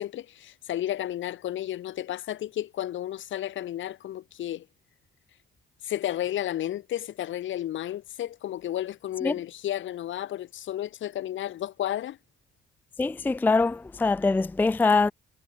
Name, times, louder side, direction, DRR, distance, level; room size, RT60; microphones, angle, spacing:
voice 1, 0.0-4.7 5.8-12.2, left 12 dB, 75° left, 2.2 m, -32 dB
voice 2, 13.0-15.1, left 3 dB, 10° left, 0.4 m, -23 dB
cardioid pair, 90°, 20 cm